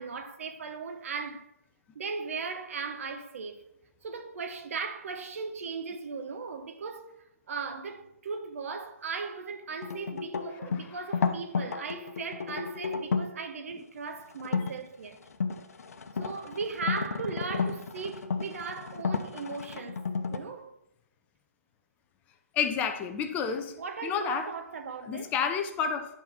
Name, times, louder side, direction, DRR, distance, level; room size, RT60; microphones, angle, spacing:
voice 1, 0.0-1.5 1.9-3.6 4.0-15.2 16.2-20.7 23.8-25.3, right 5 dB, 55° right, 1.1 m, -37 dB
sound 1, 9.8-13.4 14.4-14.7 15.2-20.4, left 5 dB, 70° left, 1.0 m, -32 dB
voice 2, 22.5-23.8 24.0-24.5 25.1-26.1, left 7 dB, 15° left, 0.6 m, -30 dB
10.5 x 4.2 x 5.8 m
hypercardioid pair, 150°, 9 cm